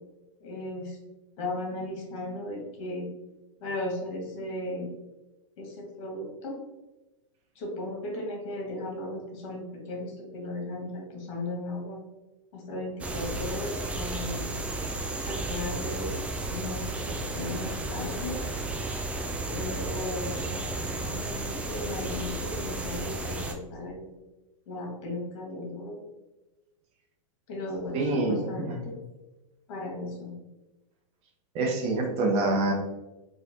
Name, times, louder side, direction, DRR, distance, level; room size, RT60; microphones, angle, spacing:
voice 1, 0.4-1.0 1.4-3.1 3.6-4.9 5.6-6.6 7.5-12.0 12.5-14.5 15.2-16.2 16.5-18.4 19.5-24.1 24.7-26.0 27.5-29.0 29.7-30.3, left 1 dB, 55° left, -1 dB, 1.3 m, -36 dB
sound 1, 13.0-23.5, right 2 dB, 5° right, 0.3 m, -33 dB
voice 2, 27.9-28.8 31.5-32.7, right 2 dB, 35° right, 1 dB, 0.8 m, -26 dB
4.2 x 2.4 x 2.8 m, 1.1 s
hypercardioid pair, 120°, 17 cm